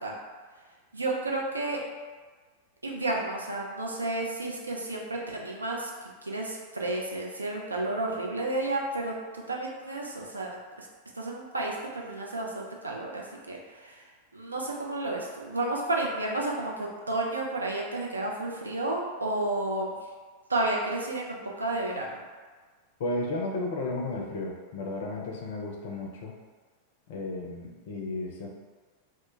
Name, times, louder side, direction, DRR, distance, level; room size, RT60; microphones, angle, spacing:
voice 1, 0.9-1.8 2.8-5.9 6.2-10.5 10.8-10.9 11.2-14.0 14.3-20.0 20.5-22.2, right 2 dB, 80° right, -1 dB, 0.4 m, -31 dB
voice 2, 23.0-26.3 27.1-28.5, left 2 dB, 55° left, 0 dB, 0.4 m, -33 dB
2.1 x 2.1 x 2.9 m, 1.4 s
figure-of-eight pair, 90°, 0 cm